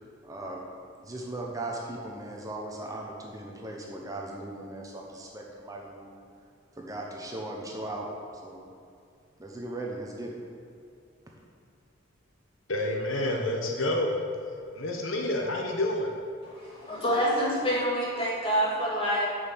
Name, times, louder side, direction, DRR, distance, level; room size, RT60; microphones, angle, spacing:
voice 1, 0.2-0.6 1.0-6.2 6.7-8.1 8.4-8.6 9.4-10.3, right 2 dB, 15° right, -1 dB, 0.9 m, -38 dB
voice 2, 12.7-14.2 14.7-16.1, left 1 dB, 75° left, 1 dB, 1.1 m, -28 dB
voice 3, 16.5-19.3, equal, 25° left, -6 dB, 2.3 m, -27 dB
6.6 x 6.1 x 7.5 m, 2.5 s
head